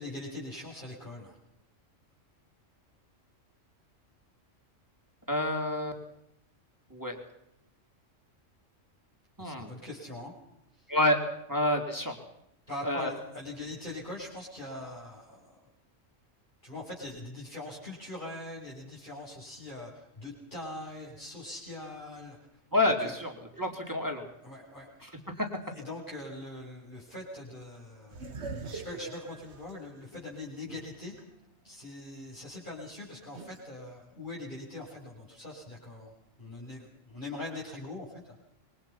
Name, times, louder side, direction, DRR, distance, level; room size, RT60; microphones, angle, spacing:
voice 1, 0.0-1.4 9.4-10.3 10.8-10.9 12.7-15.6 16.6-22.4 23.0-23.2 24.4-24.9 25.7-31.1 31.6-36.1 36.4-38.4, left 2 dB, 40° left, -5 dB, 6.9 m, -42 dB
voice 2, 5.3-5.9 6.9-7.2 9.4-9.7 10.9-11.2 11.5-12.2 12.8-13.1 22.7-23.3 23.6-24.2 25.0-25.1 25.4-25.5, left 1 dB, 15° right, 2 dB, 3.7 m, -28 dB
sound 1, 28.1-31.2 31.7-31.8 33.3-33.6, right 4 dB, 60° right, 1.8 m, -42 dB
26.5 x 23.5 x 5.8 m, 0.81 s
omnidirectional pair, 1.3 m